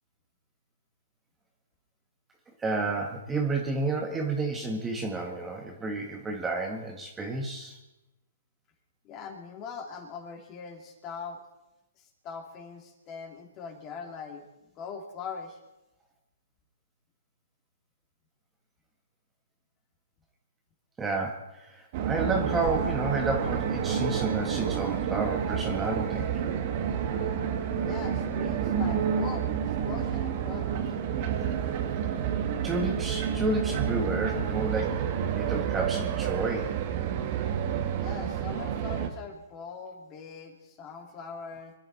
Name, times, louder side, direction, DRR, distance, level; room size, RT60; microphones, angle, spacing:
voice 1, 2.6-7.8 21.0-26.3 31.4-31.7 32.6-36.8, right 3 dB, 10° right, 1 dB, 1.7 m, -31 dB
voice 2, 9.0-11.4 12.0-14.5 14.8-15.6 27.8-30.9 38.0-41.7, left 5 dB, 30° left, 3 dB, 3.0 m, -41 dB
sound 1, 21.9-39.1, right 8 dB, 40° right, 1.7 m, -29 dB
25.0 x 10.5 x 4.2 m, 0.95 s
hypercardioid pair, 140°, 0 cm